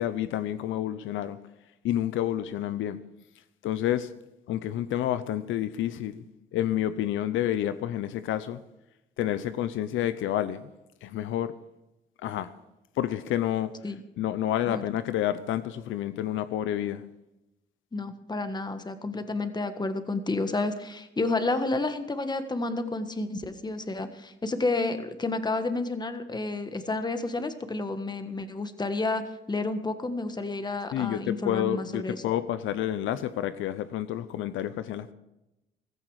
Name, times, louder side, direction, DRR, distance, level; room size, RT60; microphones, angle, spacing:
voice 1, 0.0-1.4 1.8-3.0 3.6-4.1 4.5-6.2 6.5-8.6 9.2-10.7 11.0-11.5 12.2-12.5 13.0-13.7 14.2-17.0 30.9-35.1, left 12 dB, 85° left, 0.7 m, -29 dB
voice 2, 17.9-29.2 29.5-32.2, left 2 dB, 20° left, 1.5 m, -30 dB
15.5 x 14.0 x 4.9 m
cardioid pair, 90°, 20 cm